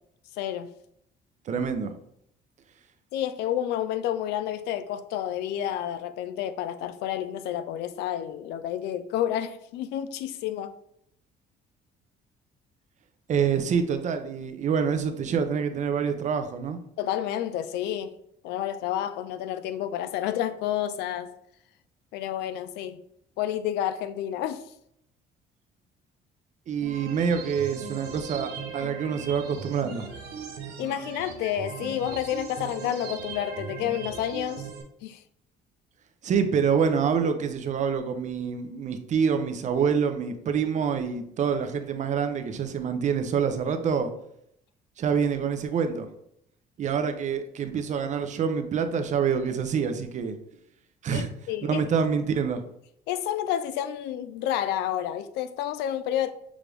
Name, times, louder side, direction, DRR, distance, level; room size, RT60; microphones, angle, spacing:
voice 1, 0.4-0.7 3.1-10.7 17.0-18.2 18.4-21.3 22.1-23.0 23.4-24.7 30.8-34.7 35.0-35.2 51.1-51.8 53.1-56.3, left 11 dB, 85° left, 0.4 m, -30 dB
voice 2, 1.5-1.9 13.3-16.8 26.7-30.1 36.2-44.1 45.0-46.1 46.8-50.4 51.0-51.3 51.6-52.6, right 6 dB, 45° right, 0.6 m, -26 dB
sound 1, 26.8-34.8, right 6 dB, 80° right, 0.8 m, -38 dB
6.1 x 2.5 x 3.4 m
cardioid pair, 110°, 17 cm